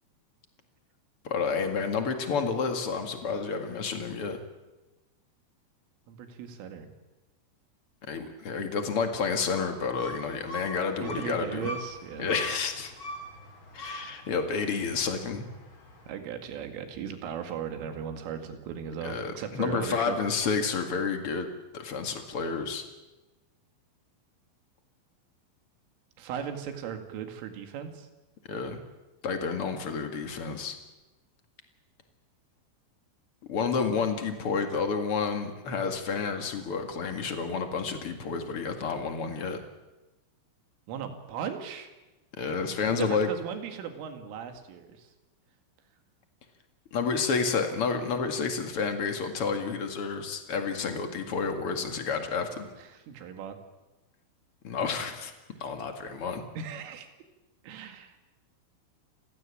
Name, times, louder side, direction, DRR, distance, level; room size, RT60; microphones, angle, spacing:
voice 1, 1.2-4.4 8.1-11.7 12.2-12.9 13.7-15.4 19.0-21.5 21.7-22.8 28.5-28.8 29.2-30.8 33.5-39.6 42.4-43.3 46.9-52.7 54.6-55.3 55.6-56.4, left 5 dB, 55° left, 6 dB, 1.5 m, -30 dB
voice 2, 6.1-6.9 11.0-12.3 16.1-20.2 26.2-28.1 40.9-41.9 43.0-45.1 53.1-53.6 56.6-57.1 57.6-58.1, right 8 dB, 80° right, 7 dB, 4.6 m, -37 dB
sound 1, 9.5-16.1, equal, 25° left, 4.2 m, -43 dB
29.0 x 16.0 x 8.6 m, 1.1 s
omnidirectional pair, 5.7 m